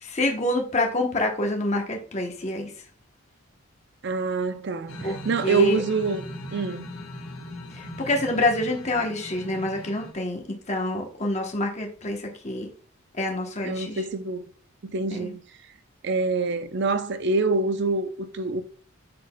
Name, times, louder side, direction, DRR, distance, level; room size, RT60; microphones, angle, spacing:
voice 1, 0.0-2.7 5.0-5.8 7.7-12.7 13.1-14.0 15.1-15.3, left 1 dB, 30° left, 1.0 m, -27 dB
voice 2, 4.0-6.2 6.5-6.9 13.6-14.4 14.9-15.4 16.0-18.6, right 3 dB, 50° right, 0.5 m, -26 dB
sound 1, 4.9-10.1, left 1 dB, 70° left, 1.2 m, -39 dB
7.6 x 6.1 x 2.2 m
head